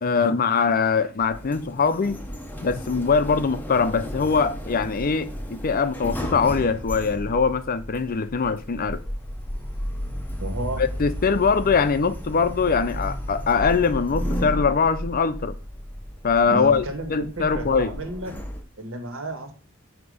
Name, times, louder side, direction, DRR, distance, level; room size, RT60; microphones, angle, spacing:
voice 1, 0.0-2.2 2.6-9.0 10.8-15.5 16.2-16.8 17.1-17.9, left 5 dB, 45° left, 0.5 m, -22 dB
Sliding door, 1.2-18.6, equal, 10° left, 0.9 m, -33 dB
voice 2, 10.4-10.8 16.5-18.3 18.8-19.5, right 1 dB, 65° right, 1.6 m, -31 dB
8.3 x 2.9 x 5.5 m
head